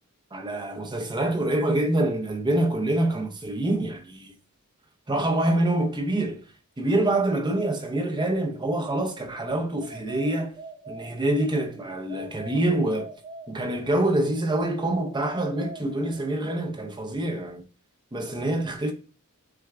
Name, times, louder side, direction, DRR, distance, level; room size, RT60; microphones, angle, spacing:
voice 1, 0.3-4.3 5.1-6.4 6.8-10.6 10.9-13.1 13.5-17.6 18.1-18.9, right 1 dB, 20° right, 0.6 m, -26 dB
sound 1, 9.8-11.6 12.1-14.0 14.5-16.4, right 1 dB, 75° right, 1.7 m, -43 dB
6.7 x 2.3 x 3.4 m
head